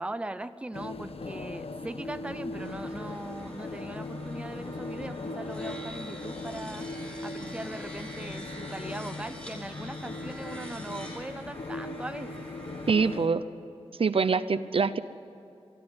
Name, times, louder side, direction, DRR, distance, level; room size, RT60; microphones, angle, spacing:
voice 1, 0.0-12.5, right 1 dB, 10° right, 11 dB, 0.7 m, -40 dB
sound 1, 0.7-13.3, left 2 dB, 70° left, 1.0 m, -39 dB
sound 2, 2.6-13.2, equal, 10° left, 4.4 m, -46 dB
voice 2, 12.9-13.4 14.0-15.0, right 5 dB, 65° right, 13 dB, 0.7 m, -24 dB
24.0 x 13.0 x 9.8 m, 2.7 s
wide cardioid pair, 105°, 10 cm